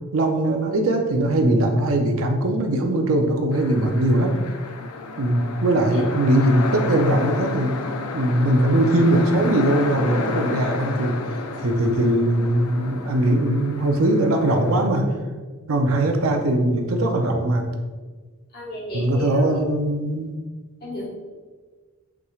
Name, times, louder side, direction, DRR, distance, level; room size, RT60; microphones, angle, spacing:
voice 1, 0.1-4.4 5.2-7.7 8.1-11.1 11.6-15.1 15.7-17.7 18.9-20.4, right 1 dB, 70° right, 4 dB, 0.5 m, -20 dB
sound 1, 3.5-14.9, left 3 dB, 80° left, 0.4 m, -32 dB
voice 2, 18.5-19.6 20.8-21.1, left 1 dB, 45° left, -5 dB, 1.4 m, -32 dB
5.8 x 3.1 x 2.4 m, 1.4 s
head